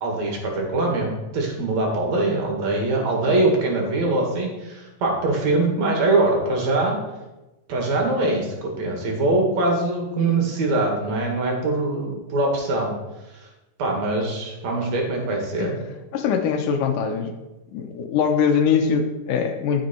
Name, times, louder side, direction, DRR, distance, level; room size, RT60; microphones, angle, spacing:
voice 1, 0.0-7.0 7.7-12.9 13.4-13.5 13.8-15.8, right 2 dB, 55° right, 0 dB, 3.1 m, -23 dB
voice 2, 16.1-17.3 17.7-19.8, left 6 dB, 75° left, 5 dB, 2.4 m, -22 dB
12.5 x 6.3 x 4.4 m, 1.0 s
omnidirectional pair, 3.9 m